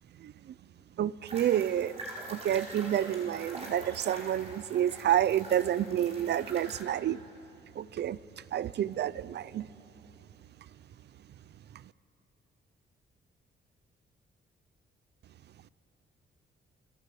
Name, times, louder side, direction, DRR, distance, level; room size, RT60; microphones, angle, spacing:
voice 1, 1.0-1.9 2.3-7.2 7.8-8.2 8.5-9.7, right 11 dB, 60° right, 19 dB, 0.5 m, -29 dB
sound 1, 1.3-6.8, right 2 dB, 35° right, 4.8 m, -45 dB
29.0 x 20.0 x 8.4 m, 2.9 s
wide cardioid pair, 150°, 20 cm